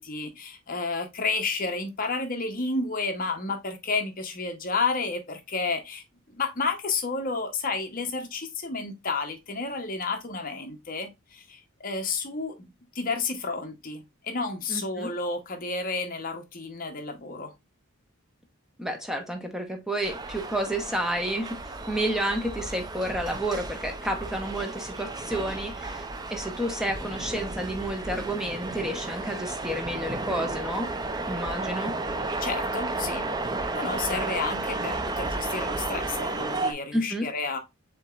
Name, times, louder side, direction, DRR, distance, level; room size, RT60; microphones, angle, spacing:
voice 1, 0.0-6.0 6.3-17.5 32.4-33.3 33.7-37.6, left 4 dB, 40° left, 0.9 m, -31 dB
voice 2, 14.7-15.1 18.8-21.6 21.9-26.0 26.3-30.9 31.3-32.0 36.9-37.3, right 1 dB, 5° right, 0.8 m, -30 dB
sound 1, 20.0-36.7, right 2 dB, 20° right, 0.4 m, -33 dB
7.2 x 2.9 x 2.3 m
head